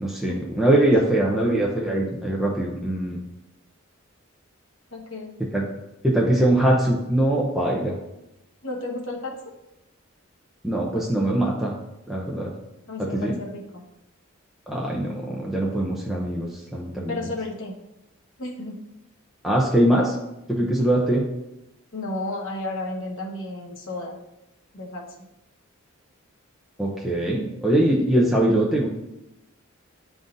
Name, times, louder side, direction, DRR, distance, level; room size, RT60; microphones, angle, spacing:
voice 1, 0.0-3.2 5.5-5.6 6.0-8.0 10.6-11.7 12.1-12.5 13.0-13.4 14.7-17.2 19.4-20.2 20.5-21.2 26.8-28.9, right 1 dB, ahead, -4 dB, 0.6 m, -22 dB
voice 2, 4.9-5.4 8.6-9.5 12.9-13.8 17.1-17.8 18.4-18.8 21.9-24.1 24.7-25.1, left 2 dB, 65° left, -2 dB, 1.2 m, -32 dB
10.0 x 3.8 x 2.6 m, 0.89 s
head